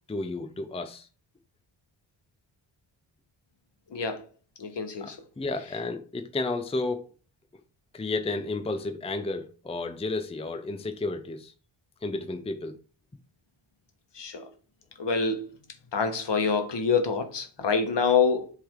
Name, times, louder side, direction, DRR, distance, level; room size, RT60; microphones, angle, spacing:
voice 1, 0.1-1.1 5.0-7.1 7.9-11.5 12.0-12.8, left 3 dB, 10° left, 0.6 m, -32 dB
voice 2, 4.6-5.1 14.2-14.4 15.0-15.5 15.9-18.5, left 5 dB, 55° left, 1.4 m, -26 dB
7.4 x 3.6 x 3.7 m
cardioid pair, 75°, 49 cm